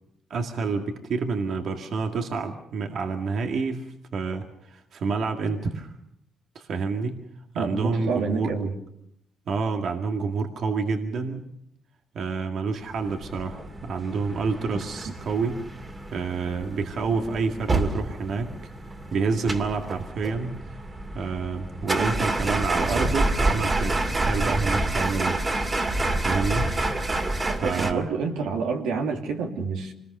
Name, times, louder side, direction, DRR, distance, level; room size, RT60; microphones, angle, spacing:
voice 1, 0.3-3.9 4.1-5.9 6.5-7.2 7.5-8.5 9.5-11.4 12.1-15.6 16.1-18.5 19.1-20.8 21.1-25.4 26.1-26.7 27.6-28.0, right 4 dB, 65° right, 3 dB, 2.1 m, -28 dB
voice 2, 7.5-8.7 27.4-29.9, right 4 dB, 90° right, 2 dB, 2.9 m, -28 dB
sound 1, 12.9-27.9, right 2 dB, 30° right, 2.6 m, -28 dB
26.0 x 20.5 x 6.8 m, 0.75 s
cardioid pair, 90°, 0 cm